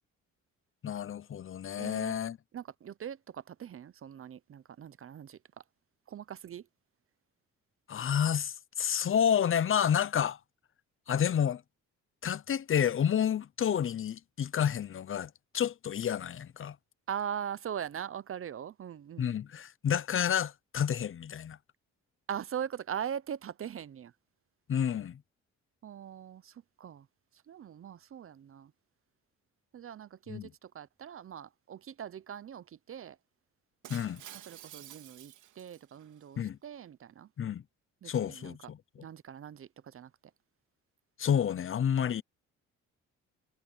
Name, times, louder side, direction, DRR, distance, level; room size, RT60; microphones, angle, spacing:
voice 1, 0.8-2.4 7.9-10.4 11.1-11.6 12.2-16.8 19.2-21.6 24.7-25.2 30.3-30.5 33.9-34.2 36.4-36.6 37.4-37.6 38.0-38.8 41.2-42.2, left 8 dB, 45° left, 0.8 m, -30 dB
voice 2, 1.8-2.1 2.5-5.4 6.1-6.7 17.1-19.4 22.3-24.1 25.8-27.1 27.5-28.7 29.7-33.2 34.5-37.3 38.0-38.6 39.0-40.1, right 9 dB, 45° right, 0.8 m, -41 dB
Shatter, 33.8-36.2, right 11 dB, 80° right, 3.5 m, -50 dB
cardioid pair, 90°, 30 cm